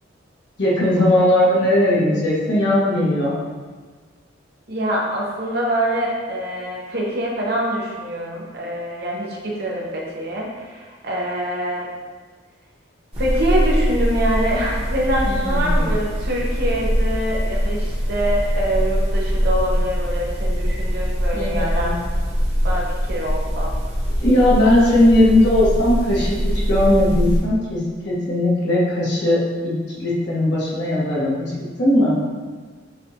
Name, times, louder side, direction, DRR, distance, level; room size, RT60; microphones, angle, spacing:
voice 1, 0.6-3.4 15.2-15.9 21.3-21.9 24.2-27.8 28.0-31.5 31.8-32.2, left 1 dB, 65° left, -7 dB, 1.3 m, -18 dB
voice 2, 4.7-11.9 13.2-22.0 22.6-23.7, right 1 dB, 55° right, -3 dB, 0.9 m, -25 dB
sound 1, 13.1-27.4, equal, 30° right, 1.1 m, -22 dB
6.3 x 2.5 x 2.9 m, 1.4 s
head